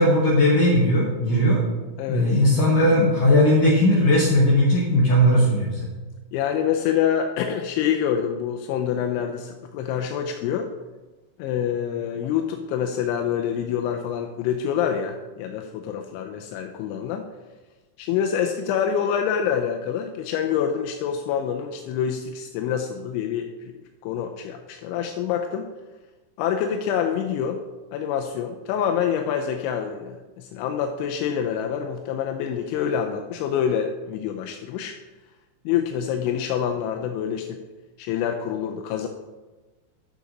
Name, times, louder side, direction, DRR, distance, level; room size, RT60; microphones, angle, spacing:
voice 1, 0.0-1.6 2.1-5.9, left 1 dB, 70° left, -4 dB, 2.1 m, -18 dB
voice 2, 2.0-2.4 6.3-10.7 11.4-17.2 18.0-23.7 24.0-25.7 26.4-27.6 27.9-35.0 35.7-37.6 38.0-39.1, left 8 dB, 85° left, 4 dB, 2.9 m, -26 dB
10.5 x 6.6 x 3.9 m, 1.2 s
omnidirectional pair, 5.5 m